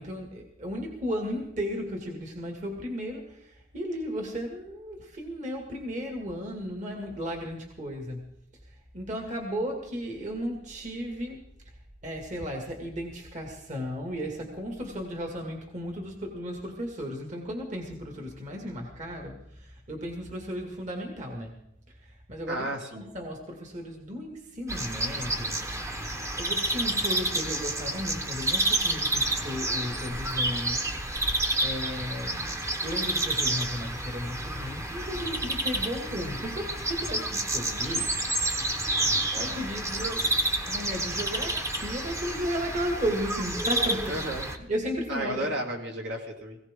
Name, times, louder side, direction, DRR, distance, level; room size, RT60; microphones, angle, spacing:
voice 1, 0.0-8.3 8.9-11.4 12.0-21.6 22.3-22.7 22.9-25.6 26.4-30.9 31.3-32.5 32.8-38.1 38.8-40.3 40.7-44.2 44.7-45.5, equal, 40° right, 2 dB, 2.2 m, -35 dB
voice 2, 22.5-23.0 44.1-44.5 45.1-46.6, right 1 dB, 65° right, 0 dB, 2.8 m, -33 dB
sound 1, 24.7-44.6, right 1 dB, 15° right, 1.1 m, -29 dB
19.0 x 17.0 x 3.7 m, 0.79 s
head